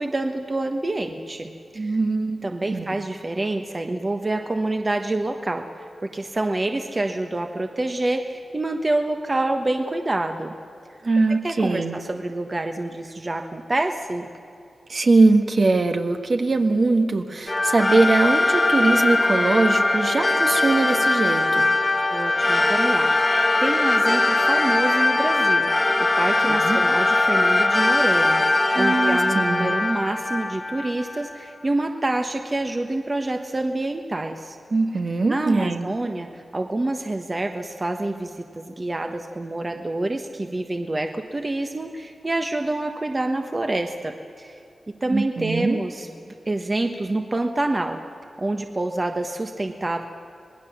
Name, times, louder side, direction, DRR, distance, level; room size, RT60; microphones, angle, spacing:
voice 1, 0.0-2.0 2.4-5.6 6.0-10.6 11.4-14.3 22.1-25.7 26.2-34.6 35.2-44.6 45.0-48.0 48.4-50.1, right 2 dB, 30° right, 5 dB, 1.2 m, -27 dB
voice 2, 1.7-2.9 11.0-12.0 14.9-21.7 26.5-26.8 28.7-29.8 34.7-35.9 45.1-45.8, right 3 dB, 55° right, 5 dB, 1.6 m, -21 dB
sound 1, 17.5-31.2, left 2 dB, 30° left, 1.3 m, -21 dB
26.5 x 19.5 x 7.2 m, 2.6 s
wide cardioid pair, 80°, 0 cm